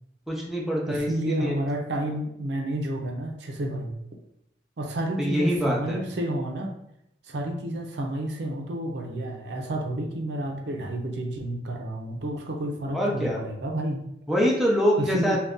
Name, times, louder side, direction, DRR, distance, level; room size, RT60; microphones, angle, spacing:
voice 1, 0.3-1.6 5.2-6.0 12.9-13.4 14.3-15.4, equal, ahead, -3 dB, 0.5 m, -25 dB
voice 2, 0.9-3.9 4.8-6.7 7.2-14.0 15.0-15.4, right 1 dB, 70° right, 2 dB, 0.5 m, -30 dB
2.6 x 2.3 x 3.5 m, 0.79 s
head